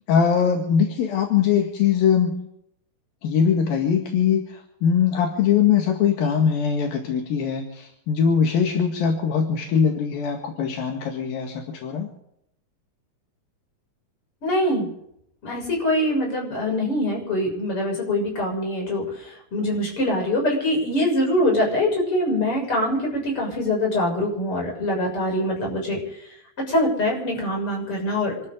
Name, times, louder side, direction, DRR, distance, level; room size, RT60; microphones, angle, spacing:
voice 1, 0.1-2.5 3.2-12.1, left 7 dB, 80° left, 2 dB, 3.8 m, -21 dB
voice 2, 14.4-14.9 15.4-26.0 26.7-28.5, left 1 dB, 35° left, 0 dB, 7.6 m, -24 dB
28.0 x 13.5 x 3.8 m, 0.75 s
omnidirectional pair, 4.1 m